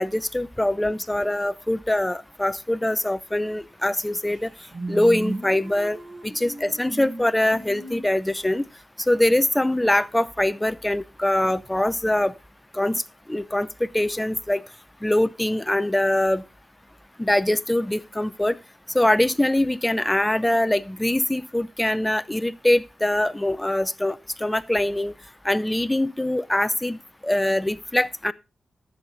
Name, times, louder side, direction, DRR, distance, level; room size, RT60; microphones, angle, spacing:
voice 1, 0.0-4.5 4.9-6.0 6.2-8.7 9.0-12.3 12.7-13.0 13.3-14.6 15.0-16.4 17.2-18.6 18.9-25.1 25.4-28.3, left 1 dB, 10° left, 0.5 m, -23 dB
sound 1, 4.0-4.1 4.3-8.4, right 2 dB, 80° right, 4.6 m, -36 dB
15.0 x 7.3 x 4.0 m
cardioid pair, 75°, 0 cm